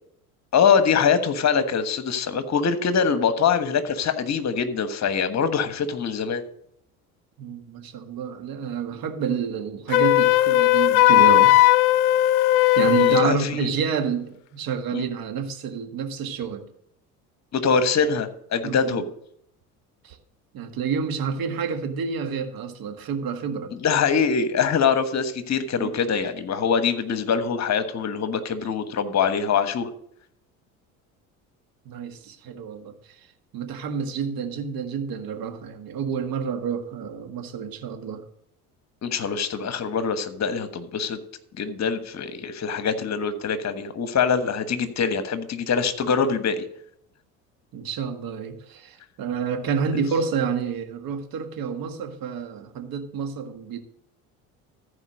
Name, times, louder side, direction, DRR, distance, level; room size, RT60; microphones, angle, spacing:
voice 1, 0.5-6.4 13.0-13.7 14.9-15.1 17.5-19.0 23.8-29.9 39.0-41.2 41.6-46.6 49.9-50.0, left 6 dB, 40° left, 11 dB, 1.3 m, -23 dB
voice 2, 7.4-11.5 12.8-16.6 18.6-19.0 20.0-20.2 20.5-23.7 25.8-25.9 31.9-33.3 33.5-38.2 47.7-53.8, right 6 dB, 55° right, 7 dB, 1.8 m, -29 dB
Wind instrument woodwind instrument, 9.9-13.3, left 15 dB, 80° left, 0.5 m, -17 dB
14.5 x 5.0 x 6.3 m, 0.71 s
hypercardioid pair, 65°, 43 cm